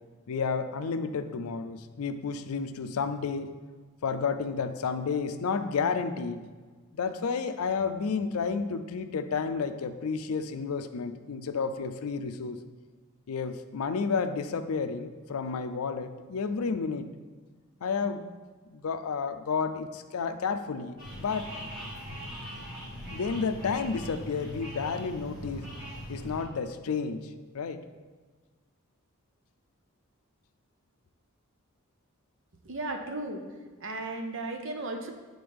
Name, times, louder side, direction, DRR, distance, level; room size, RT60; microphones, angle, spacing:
voice 1, 0.3-3.5 4.0-6.5 6.9-12.6 13.3-17.1 17.8-18.2 18.7-21.5 23.1-25.7 26.1-27.8, left 5 dB, 85° left, 10 dB, 0.4 m, -31 dB
sound 1, 21.0-26.4, equal, 25° right, 1.6 m, -41 dB
voice 2, 32.6-33.4 33.8-35.1, right 2 dB, 60° right, 4 dB, 0.8 m, -35 dB
9.5 x 3.9 x 3.4 m, 1.4 s
head